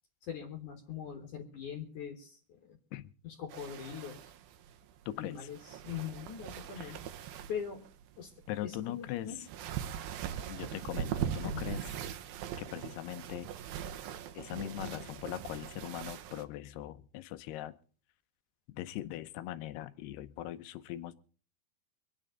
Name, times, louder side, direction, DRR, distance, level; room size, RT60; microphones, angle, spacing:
voice 1, 0.2-2.8 3.2-4.3 5.2-7.0 7.5-7.9 8.2-8.3 8.6-9.4 11.4-11.7, left 8 dB, 55° left, 3 dB, 2.9 m, -42 dB
sound 1, 3.5-16.4, right 9 dB, 75° right, 2.6 m, -41 dB
voice 2, 5.1-5.5 6.8-6.9 8.5-9.3 10.5-11.9 12.6-13.5 14.3-17.7 18.7-21.2, left 13 dB, 80° left, 13 dB, 2.8 m, -40 dB
25.0 x 9.8 x 3.9 m, 0.39 s
omnidirectional pair, 4.7 m